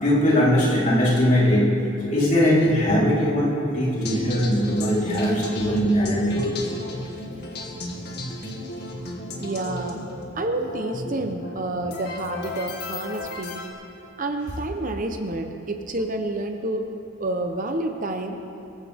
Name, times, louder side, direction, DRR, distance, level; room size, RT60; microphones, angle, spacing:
voice 1, 0.0-1.7 2.0-6.5, equal, 40° left, -6 dB, 4.0 m, -20 dB
sound 1, 4.0-13.7, left 1 dB, 55° left, 2.2 m, -34 dB
voice 2, 9.4-10.0 10.3-13.6 14.2-16.8 17.2-18.4, right 2 dB, 45° right, 5 dB, 0.9 m, -29 dB
24.0 x 15.0 x 3.6 m, 2.9 s
head